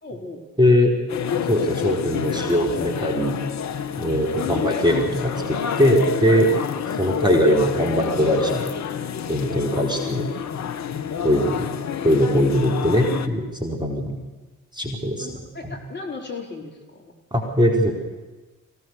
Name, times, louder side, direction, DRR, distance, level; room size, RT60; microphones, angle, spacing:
voice 1, 0.0-0.4 4.3-4.9 9.9-10.2 15.2-17.1, left 3 dB, 25° left, -1 dB, 4.6 m, -37 dB
voice 2, 0.6-0.9 1.5-3.4 4.0-6.5 7.0-8.6 9.3-10.2 11.2-11.7 12.0-14.2 14.7-15.3 15.6-15.8 17.3-17.9, equal, 10° right, 0 dB, 4.0 m, -21 dB
sound 1, 1.1-13.3, left 8 dB, 40° left, 1.1 m, -28 dB
24.5 x 17.0 x 6.8 m, 1.2 s
figure-of-eight pair, 45°, 43 cm